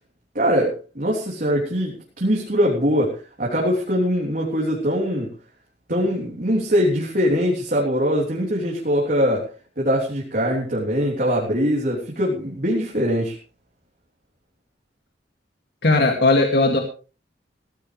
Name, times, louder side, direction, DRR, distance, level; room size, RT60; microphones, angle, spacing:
voice 1, 0.3-5.3 5.9-9.5 9.8-13.4, equal, 50° right, -3 dB, 3.3 m, -22 dB
voice 2, 15.8-16.8, left 2 dB, 60° left, 3 dB, 2.2 m, -17 dB
17.0 x 15.0 x 3.3 m, 0.35 s
head